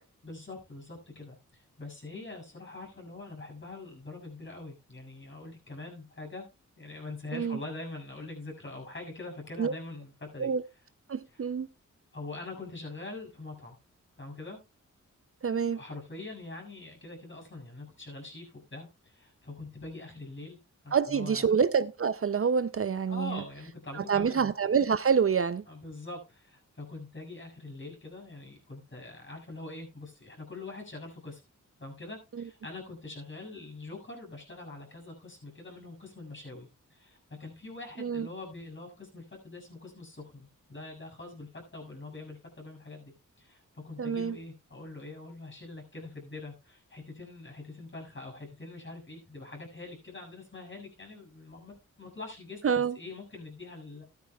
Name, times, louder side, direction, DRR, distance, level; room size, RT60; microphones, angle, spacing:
voice 1, 0.2-6.5 6.8-10.5 11.3-11.4 12.1-13.8 14.2-14.6 15.8-20.6 20.8-21.5 23.1-24.5 25.7-31.4 31.8-52.6 53.0-54.0, left 2 dB, 40° left, 7.1 m, -44 dB
voice 2, 11.1-11.7 15.4-15.8 20.9-23.4 24.1-25.6 38.0-38.3 44.0-44.4 52.6-53.0, right 6 dB, 45° right, 0.6 m, -27 dB
15.0 x 12.5 x 2.4 m
cardioid pair, 75°, 31 cm